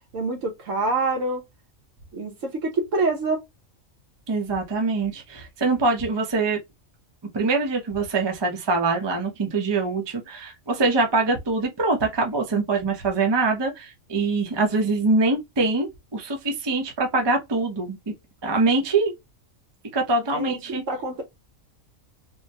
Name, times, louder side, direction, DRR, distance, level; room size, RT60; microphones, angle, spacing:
voice 1, 0.1-1.4 2.1-3.4 20.3-21.2, right 3 dB, 65° right, 1.3 m, -26 dB
voice 2, 4.3-6.6 7.3-18.0 18.4-19.1 19.9-20.8, right 3 dB, 25° right, 0.6 m, -24 dB
3.5 x 2.1 x 2.7 m
omnidirectional pair, 1.4 m